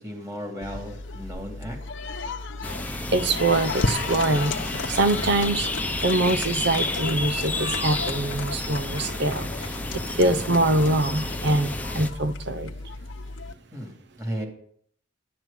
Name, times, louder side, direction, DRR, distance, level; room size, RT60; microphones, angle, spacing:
voice 1, 0.0-1.8 13.7-14.5, equal, 15° right, 1 dB, 3.3 m, -35 dB
sound 1, 0.6-13.5, left 3 dB, 80° left, 1.0 m, -34 dB
sound 2, 2.6-12.1, left 2 dB, 10° left, 0.9 m, -31 dB
voice 2, 3.1-4.5 4.9-5.7 6.0-9.7 10.2-12.7, right 2 dB, 65° right, 11 dB, 0.9 m, -24 dB
11.0 x 7.5 x 9.3 m, 0.63 s
head